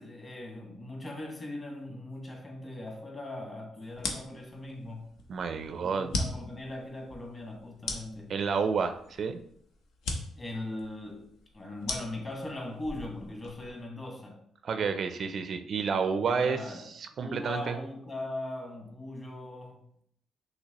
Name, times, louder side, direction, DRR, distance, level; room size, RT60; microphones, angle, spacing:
voice 1, 0.0-5.1 5.8-8.3 10.4-11.3 11.5-14.4 16.3-16.9 17.2-20.0, left 2 dB, 30° left, 1 dB, 1.4 m, -40 dB
sound 1, 3.9-13.8, left 3 dB, 85° left, 0.7 m, -39 dB
voice 2, 5.3-6.1 8.3-9.4 14.6-17.8, right 5 dB, 55° right, 9 dB, 0.4 m, -30 dB
5.9 x 2.9 x 2.8 m, 0.68 s
cardioid pair, 90°, 0 cm